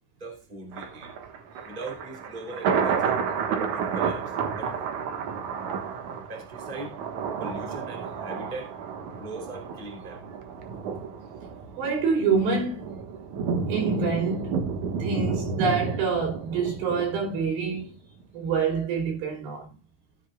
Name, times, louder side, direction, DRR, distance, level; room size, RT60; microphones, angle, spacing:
voice 1, 0.2-1.1 1.6-3.2 3.7-4.8 6.3-6.9 7.4-8.8 9.2-10.2, right 2 dB, 10° right, 2.5 m, -40 dB
Thunder, 0.7-17.8 18.2-18.3, right 6 dB, 80° right, 1.7 m, -31 dB
voice 2, 11.8-12.9 13.7-14.5 15.0-17.9 18.3-19.7, right 5 dB, 60° right, 4.9 m, -26 dB
16.5 x 8.5 x 2.3 m
omnidirectional pair, 5.9 m